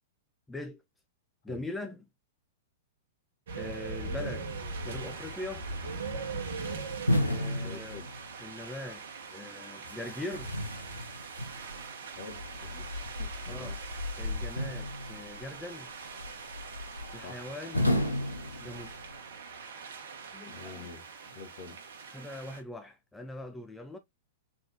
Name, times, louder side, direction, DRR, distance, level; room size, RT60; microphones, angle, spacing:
voice 1, 0.5-0.8 1.4-2.0 3.5-4.5 4.8-5.7 7.2-8.0 8.4-9.1 9.3-10.5 13.5-13.8 14.2-15.9 17.1-17.9 18.6-19.0 20.3-20.9 22.1-24.0, left 2 dB, 5° left, 0.4 m, -41 dB
sound 1, 3.5-22.6, right 4 dB, 60° right, 1.0 m, -42 dB
voice 2, 4.0-4.4 7.5-8.1 12.1-12.9 13.2-13.8 17.2-17.4 17.7-18.1 20.5-21.8, left 5 dB, 55° left, 1.3 m, -46 dB
sound 2, 7.1-8.5 9.8-11.9 14.6-15.4 17.7-19.2, left 1 dB, 90° left, 0.8 m, -32 dB
Traffic noise roadway noise, 12.3-19.2, left 3 dB, 90° right, 1.0 m, -42 dB
3.8 x 3.6 x 2.7 m
figure-of-eight pair, 105°, 0 cm